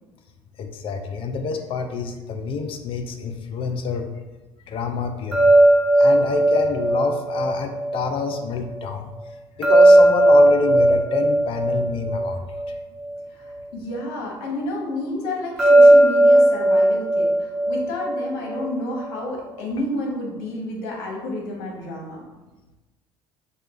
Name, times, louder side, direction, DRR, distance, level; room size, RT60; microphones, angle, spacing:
voice 1, 0.6-4.1 4.7-5.7 6.0-9.1 9.6-12.4, left 4 dB, 50° left, 6 dB, 0.5 m, -27 dB
sound 1, 5.3-8.4 9.6-13.1 15.6-18.7, right 1 dB, ahead, 1.2 m, -16 dB
voice 2, 13.3-22.2, left 1 dB, 70° left, -1 dB, 1.0 m, -30 dB
6.3 x 2.3 x 2.4 m, 1.1 s
hypercardioid pair, 75°, 12 cm